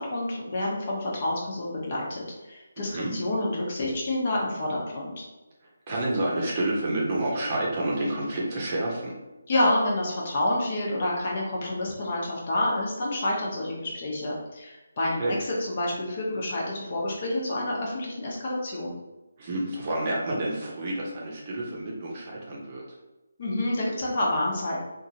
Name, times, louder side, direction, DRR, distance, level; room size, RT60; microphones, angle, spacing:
voice 1, 0.0-5.2 9.5-18.9 23.4-24.8, left 1 dB, 40° left, -3 dB, 0.9 m, -28 dB
voice 2, 2.8-3.2 5.9-9.2 15.2-15.4 19.4-23.0, right 1 dB, 35° right, -4 dB, 0.8 m, -29 dB
2.8 x 2.5 x 2.8 m, 1.1 s
figure-of-eight pair, 160°, 0 cm